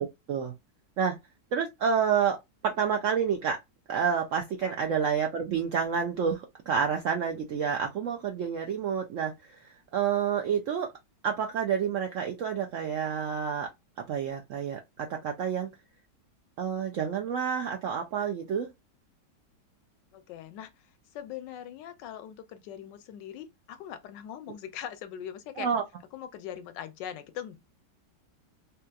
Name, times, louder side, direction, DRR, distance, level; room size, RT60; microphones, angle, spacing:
voice 1, 1.5-2.4 2.6-3.6 3.9-10.9 11.2-13.7 14.0-15.7 16.6-18.7 25.6-25.8, right 7 dB, 75° right, 0.7 m, -29 dB
voice 2, 20.1-25.7 26.1-27.6, left 10 dB, 85° left, 1.3 m, -41 dB
3.3 x 2.9 x 2.3 m
omnidirectional pair, 1.9 m